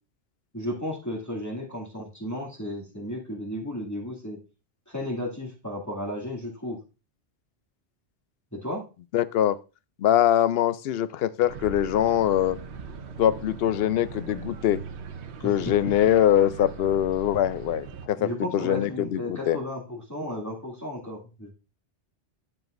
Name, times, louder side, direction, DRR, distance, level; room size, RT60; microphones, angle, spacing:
voice 1, 0.5-4.4 4.9-6.8 8.5-8.8 15.4-15.7 18.2-21.5, left 1 dB, 15° left, 2.3 m, -34 dB
voice 2, 9.1-9.6 10.0-12.6 13.2-14.8 15.4-19.6, left 11 dB, 65° left, 0.7 m, -23 dB
sound 1, 11.5-18.1, right 6 dB, 75° right, 1.1 m, -40 dB
10.5 x 7.2 x 2.5 m
omnidirectional pair, 1.2 m